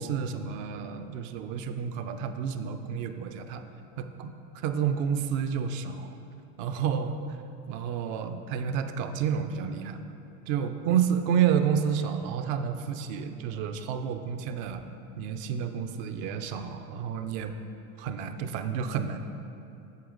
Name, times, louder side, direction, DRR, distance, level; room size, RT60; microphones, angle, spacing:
voice 1, 0.0-3.6 4.0-4.3 4.6-6.1 6.6-7.2 7.7-10.0 10.5-14.8 15.2-17.5 18.0-19.2, right 7 dB, 60° right, 7 dB, 0.7 m, -30 dB
8.4 x 6.9 x 3.9 m, 2.9 s
hypercardioid pair, 90°, 43 cm